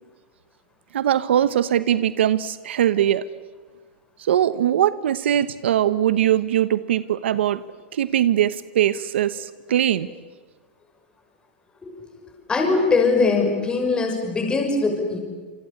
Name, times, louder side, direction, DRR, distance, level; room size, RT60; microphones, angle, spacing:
voice 1, 0.9-3.3 4.2-7.6 7.9-10.1, right 11 dB, 85° right, 15 dB, 1.0 m, -21 dB
voice 2, 12.5-15.2, left 4 dB, 15° left, 3 dB, 5.9 m, -21 dB
27.0 x 24.0 x 8.6 m, 1.4 s
supercardioid pair, 135°, 6 cm